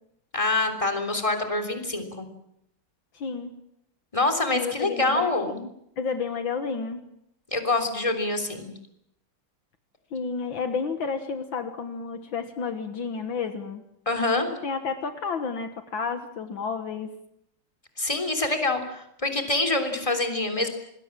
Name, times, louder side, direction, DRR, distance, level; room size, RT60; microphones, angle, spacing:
voice 1, 0.3-2.3 4.1-5.5 7.5-8.7 14.1-14.5 18.0-20.7, left 2 dB, 15° left, 5 dB, 3.4 m, -25 dB
voice 2, 3.1-3.5 4.5-5.7 6.0-7.0 10.1-13.8 14.6-17.1, left 5 dB, 65° left, 8 dB, 2.1 m, -31 dB
27.0 x 20.5 x 7.4 m, 0.78 s
omnidirectional pair, 2.3 m